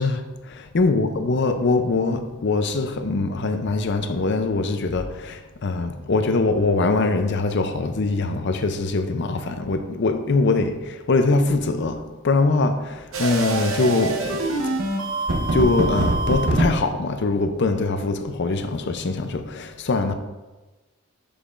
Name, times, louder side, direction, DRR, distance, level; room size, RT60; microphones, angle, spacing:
voice 1, 0.0-14.8 15.4-20.1, left 3 dB, 50° left, 0.5 m, -23 dB
sound 1, 13.1-16.7, right 2 dB, 60° right, 0.9 m, -24 dB
7.2 x 6.8 x 2.5 m
head